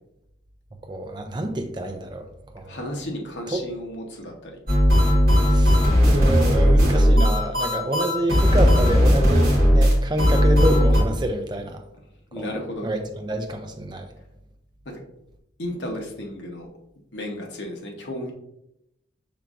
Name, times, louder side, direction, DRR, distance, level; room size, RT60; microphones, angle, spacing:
voice 1, 0.8-2.3 2.5-2.8 3.5-3.7 5.5-11.8 12.3-12.5 12.8-14.1, right 1 dB, 25° right, 5 dB, 0.4 m, -27 dB
voice 2, 2.7-4.6 12.3-12.9 14.9-15.0 15.6-16.7 17.1-18.3, left 1 dB, 75° left, 1 dB, 0.9 m, -33 dB
sound 1, 4.7-11.0, equal, 50° right, 1.7 m, -17 dB
5.8 x 3.5 x 2.5 m, 0.84 s
head